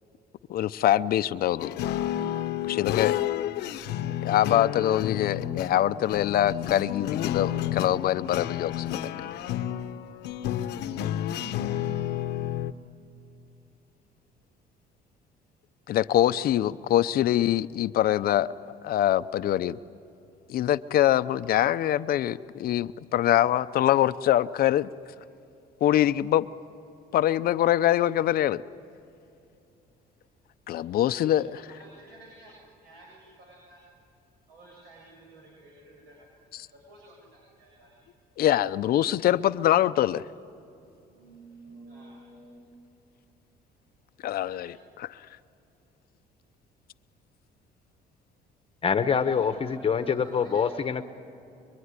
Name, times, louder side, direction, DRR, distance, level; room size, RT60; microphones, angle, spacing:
voice 1, 0.5-1.8 2.7-3.1 4.0-9.1 15.9-18.5 18.8-19.8 20.5-24.9 25.8-26.5 27.1-28.6 30.7-31.6 38.4-40.2 44.2-45.2, left 12 dB, 60° left, 13 dB, 0.7 m, -24 dB
sound 1, 1.6-12.7, left 11 dB, 85° left, 1.0 m, -31 dB
voice 2, 30.6-32.5 32.8-33.8 34.5-36.3 36.7-38.0 38.8-39.2 41.0-42.7 44.1-44.8 49.0-50.6, right 1 dB, 75° right, -2 dB, 7.4 m, -52 dB
voice 3, 48.8-51.0, left 6 dB, 35° left, 10 dB, 1.1 m, -25 dB
25.5 x 23.5 x 9.7 m, 2.6 s
cardioid pair, 110°, 17 cm